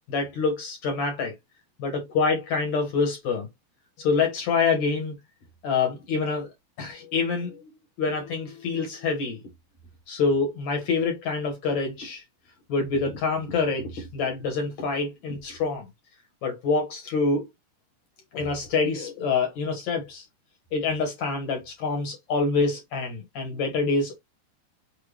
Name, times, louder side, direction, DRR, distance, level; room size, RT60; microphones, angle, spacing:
voice 1, 0.1-1.3 1.8-3.5 4.0-5.1 5.6-6.5 6.8-7.7 8.0-9.4 10.1-12.2 12.7-15.9 16.4-17.5 18.3-20.3 20.7-24.2, left 4 dB, 65° left, 1.8 m, -26 dB
6.6 x 2.2 x 3.2 m
omnidirectional pair, 4.9 m